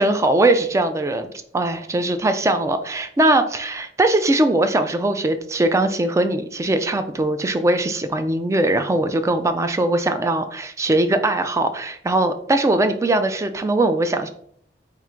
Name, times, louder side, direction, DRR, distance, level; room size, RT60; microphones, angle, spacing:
voice 1, 0.0-14.3, right 2 dB, 15° right, 8 dB, 0.3 m, -20 dB
3.6 x 2.5 x 4.3 m, 0.66 s
head